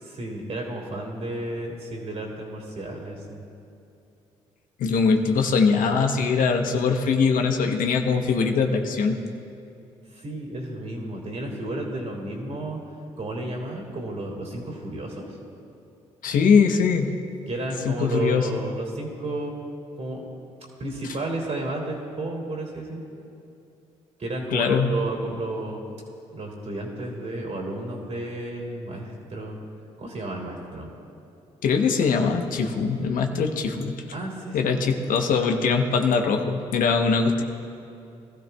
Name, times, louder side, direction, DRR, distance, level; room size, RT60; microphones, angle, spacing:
voice 1, 0.0-3.4 10.1-12.8 13.2-15.4 17.5-19.5 20.0-20.2 20.8-23.0 24.2-25.8 26.3-29.6 30.0-30.9 34.1-34.8, right 2 dB, 50° right, -1 dB, 2.9 m, -32 dB
voice 2, 4.8-9.2 16.2-17.2 17.8-18.5 24.5-24.9 31.6-34.0 34.5-37.4, left 5 dB, 70° left, 5 dB, 0.9 m, -22 dB
20.5 x 13.0 x 2.3 m, 2.7 s
hypercardioid pair, 50°, 15 cm